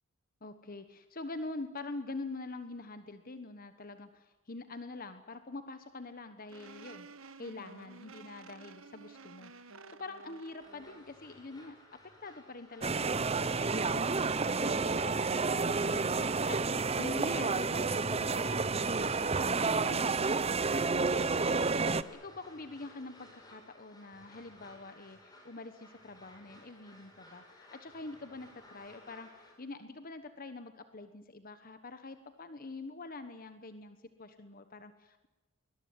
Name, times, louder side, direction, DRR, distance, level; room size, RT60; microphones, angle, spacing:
voice 1, 0.4-7.1 7.4-14.1 14.6-16.6 17.0-21.7 22.1-35.3, left 3 dB, 45° left, 9 dB, 1.2 m, -45 dB
sound 1, 6.5-11.1, right 4 dB, 70° right, 1.4 m, -52 dB
sound 2, 10.6-29.5, left 1 dB, 20° left, 6.7 m, -57 dB
sound 3, 12.8-22.0, right 4 dB, 30° right, 0.8 m, -30 dB
22.0 x 21.0 x 9.6 m, 1.1 s
head